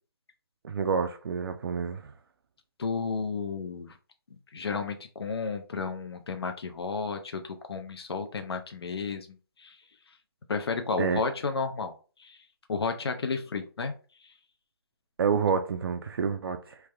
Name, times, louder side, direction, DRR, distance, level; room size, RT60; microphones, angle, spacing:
voice 1, 0.6-2.1 11.0-11.2 15.2-16.8, right 6 dB, 65° right, 0.4 m, -28 dB
voice 2, 2.8-3.9 4.5-9.3 9.6-9.8 10.5-11.9 12.2-12.4 12.7-13.9, left 4 dB, 90° left, 0.5 m, -32 dB
3.4 x 2.1 x 3.3 m
hypercardioid pair, 170°, 13 cm